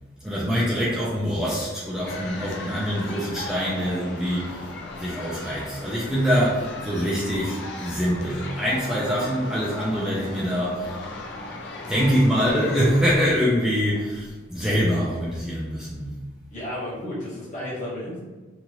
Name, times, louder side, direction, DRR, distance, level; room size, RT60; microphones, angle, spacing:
voice 1, 0.2-4.6 5.0-10.9 11.9-16.2, equal, 5° right, -7 dB, 0.4 m, -24 dB
sound 1, 2.1-13.3, left 2 dB, 65° left, 0.4 m, -37 dB
voice 2, 16.5-18.2, left 1 dB, 40° left, -7 dB, 1.2 m, -33 dB
3.0 x 2.4 x 2.8 m, 1.3 s
head